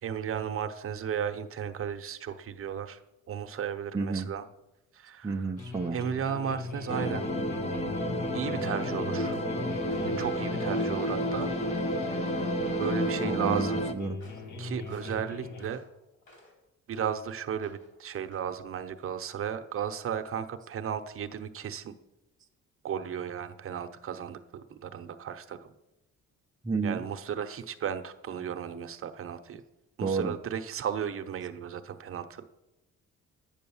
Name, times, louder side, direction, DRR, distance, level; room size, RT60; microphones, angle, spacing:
voice 1, 0.0-3.0 3.3-4.4 4.9-5.5 5.9-7.3 8.3-9.4 10.2-11.5 12.8-13.8 14.6-15.8 16.9-22.0 22.8-25.7 26.8-29.6 30.0-32.5, right 8 dB, 50° right, 0.8 m, -34 dB
voice 2, 3.9-4.3 5.2-6.0 13.2-14.2 26.6-27.0 30.0-30.4, right 4 dB, 15° right, 0.5 m, -31 dB
sound 1, 5.6-15.7, left 3 dB, 85° left, 1.5 m, -41 dB
sound 2, 6.9-13.9, equal, 25° left, 0.7 m, -30 dB
sound 3, 9.2-9.5 9.9-10.2 10.6-11.0 11.4-11.7 12.1-12.4 12.8-13.0 13.5-13.9 14.2-14.5 14.9-16.6 16.9-17.2 17.6-18.0 18.3-18.5, left 1 dB, 45° left, 4.0 m, -55 dB
11.0 x 8.9 x 7.1 m
wide cardioid pair, 170°, 29 cm